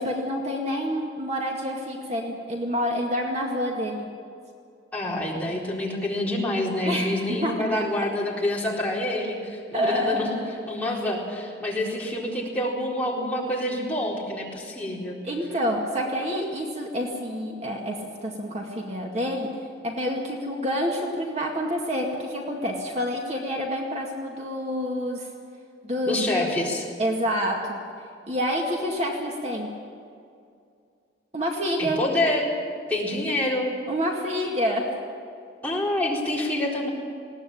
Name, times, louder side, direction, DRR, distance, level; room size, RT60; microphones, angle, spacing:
voice 1, 0.0-4.1 6.9-7.5 9.7-10.5 15.2-19.5 19.8-25.3 25.8-26.4 27.0-27.8 28.3-29.7 31.3-32.0 33.9-34.9, equal, 35° right, 0 dB, 2.2 m, -28 dB
voice 2, 4.9-10.4 10.7-15.2 26.0-26.9 31.8-32.5 32.9-33.7 35.6-36.9, left 1 dB, 10° left, -5 dB, 4.2 m, -27 dB
20.5 x 18.0 x 8.8 m, 2.4 s
head